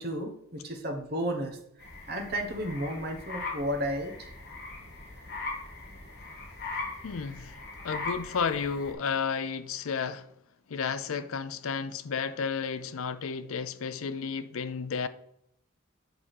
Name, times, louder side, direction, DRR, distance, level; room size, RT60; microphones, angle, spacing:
voice 1, 0.0-1.6 2.1-4.3, equal, 45° right, 1.2 m, -33 dB
sound 1, 1.8-8.9, left 3 dB, 50° left, 2.6 m, -40 dB
voice 2, 7.0-7.5 7.8-10.3 10.7-15.1, left 6 dB, 75° left, 0.5 m, -32 dB
8.0 x 3.6 x 6.4 m
head